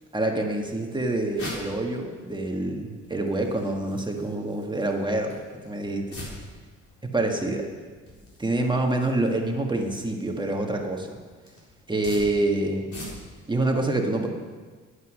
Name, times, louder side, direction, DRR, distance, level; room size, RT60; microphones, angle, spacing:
voice 1, 0.1-6.1 7.1-7.7 8.4-11.2 11.9-12.9 13.5-14.3, right 2 dB, 15° right, 2 dB, 1.6 m, -26 dB
sound 1, 1.2-13.5, left 2 dB, 50° left, 4.2 m, -45 dB
9.6 x 9.4 x 6.3 m, 1.5 s
cardioid pair, 90°, 30 cm